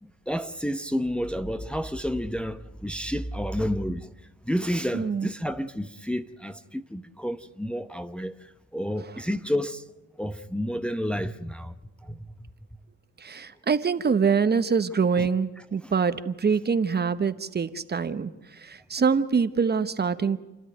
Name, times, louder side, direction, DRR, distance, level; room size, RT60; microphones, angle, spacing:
voice 1, 0.0-4.1 4.4-9.9 10.2-11.7 12.0-12.2 15.2-15.3 15.8-16.2, equal, 5° left, 0.9 m, -30 dB
voice 2, 4.9-5.3 13.2-20.4, right 5 dB, 35° right, 1.0 m, -25 dB
29.5 x 12.5 x 9.1 m
cardioid pair, 90°, 30 cm